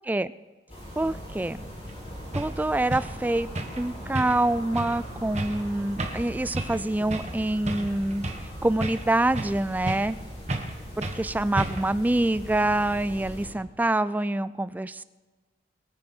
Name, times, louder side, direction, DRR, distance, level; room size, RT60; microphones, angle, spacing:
sound 1, 0.7-13.5, equal, 35° left, 4.6 m, -40 dB
voice 1, 1.0-1.6 2.4-3.5 3.7-8.2 8.6-10.2 11.0-15.0, right 1 dB, 10° right, 16 dB, 0.3 m, -26 dB
sound 2, 1.9-2.0 2.3-2.5 2.9-3.1 3.5-3.8 4.1-4.5 4.7-5.0 5.3-5.6 6.0-6.3 6.5-6.8 7.1-7.3 7.7-8.5 8.8-9.6 9.9-10.2 10.5-10.7 11.0-11.2 11.6-11.9, right 1 dB, 40° right, 1.5 m, -32 dB
22.5 x 9.6 x 4.4 m, 1.3 s
head